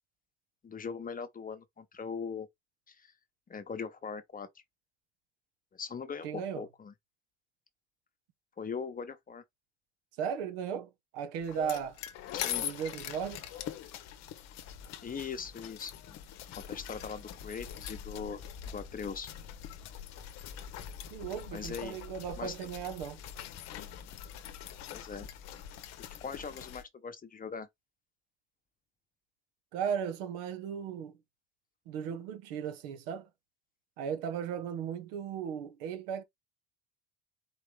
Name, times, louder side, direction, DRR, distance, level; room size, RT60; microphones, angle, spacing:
voice 1, 0.6-2.5 2.9-3.1 3.5-4.5 5.7-6.9 8.6-9.4 12.3-12.6 15.0-16.2 16.5-18.4 18.7-19.3 21.5-22.0 22.4-22.6 24.9-25.3 26.2-27.7, left 5 dB, 25° left, 1.1 m, -40 dB
voice 2, 6.2-6.6 10.2-12.0 12.6-13.5 21.1-23.2 29.7-31.1 31.9-33.3 34.0-36.2, right 8 dB, 70° right, 1.1 m, -36 dB
sound 1, 11.4-26.8, left 10 dB, 55° left, 0.9 m, -43 dB
4.8 x 3.2 x 3.4 m
hypercardioid pair, 65°, 31 cm